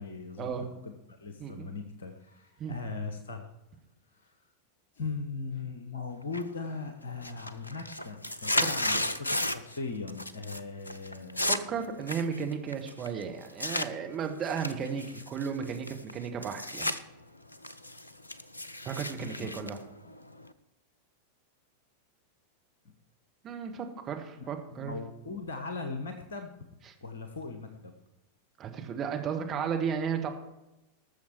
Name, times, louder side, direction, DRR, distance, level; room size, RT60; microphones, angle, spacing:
voice 1, 0.0-0.5 0.8-3.5 4.1-4.3 4.9-11.6 19.2-19.8 24.4-26.5 27.0-27.9, left 4 dB, 65° left, 7 dB, 1.3 m, -39 dB
voice 2, 1.4-1.7 2.6-2.8 11.5-16.9 18.9-19.8 23.4-25.0 28.6-30.3, right 7 dB, 30° right, 4 dB, 1.9 m, -34 dB
sound 1, 6.3-6.8 7.1-9.8 10.1-10.6 10.9-13.9 14.4-17.0 17.3-20.5, left 1 dB, 80° left, 0.6 m, -33 dB
18.5 x 7.1 x 4.7 m, 0.94 s
figure-of-eight pair, 90°, 0 cm